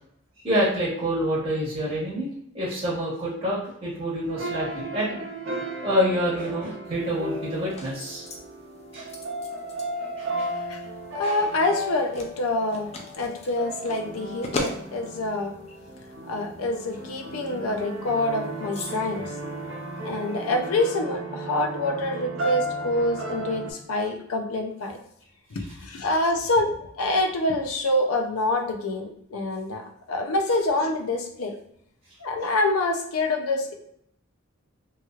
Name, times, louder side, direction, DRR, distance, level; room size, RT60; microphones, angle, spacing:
voice 1, 0.4-5.2 5.8-8.2 8.9-9.1 10.2-10.5, equal, 25° right, -9 dB, 1.0 m, -27 dB
sound 1, 4.3-23.7, right 1 dB, 65° right, 0.8 m, -35 dB
sound 2, 6.8-20.6, left 2 dB, 30° left, 0.4 m, -41 dB
voice 2, 11.2-12.9 13.1-15.5 16.3-19.3 20.0-25.0 25.5-31.5 32.2-33.7, left 2 dB, 90° left, 4 dB, 0.5 m, -26 dB
3.0 x 2.9 x 2.4 m, 0.73 s
head